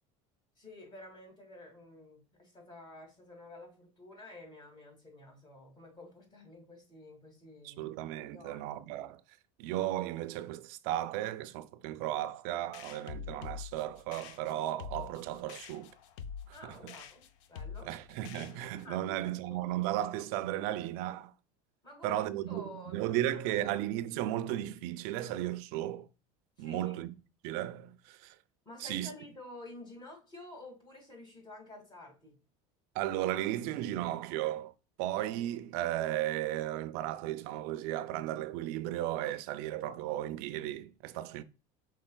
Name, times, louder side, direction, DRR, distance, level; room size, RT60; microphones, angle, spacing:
voice 1, 0.6-8.0 8.3-8.7 16.5-17.2 17.5-17.9 18.8-19.1 19.5-19.8 21.8-23.7 26.6-27.0 28.7-32.4, left 2 dB, 30° left, 2.2 m, -51 dB
voice 2, 7.6-9.2 9.6-15.9 16.5-16.9 17.8-21.3 22.0-26.1 26.6-27.1 27.4-28.4 28.8-29.1 33.0-34.7 35.0-41.4, right 13 dB, 70° right, 0.4 m, -35 dB
sound 1, 12.7-18.9, left 6 dB, 75° left, 0.5 m, -46 dB
5.3 x 3.8 x 2.2 m
supercardioid pair, 120°, 16 cm